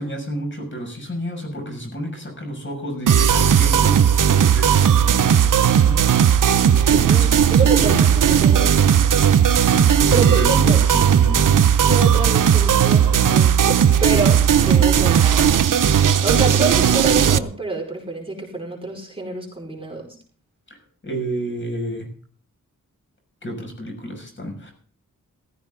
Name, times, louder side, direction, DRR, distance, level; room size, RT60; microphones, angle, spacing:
voice 1, 0.0-6.0 6.7-7.4 7.8-8.0 9.4-11.5 21.0-22.1 23.4-24.7, right 1 dB, 35° left, 2 dB, 6.4 m, -31 dB
sound 1, 3.1-17.4, right 8 dB, 70° right, 0.8 m, -16 dB
voice 2, 6.9-8.8 10.1-10.8 11.9-15.6 16.2-20.1, right 3 dB, 15° right, -1 dB, 5.1 m, -27 dB
15.0 x 15.0 x 3.9 m, 0.44 s
wide cardioid pair, 80°, 33 cm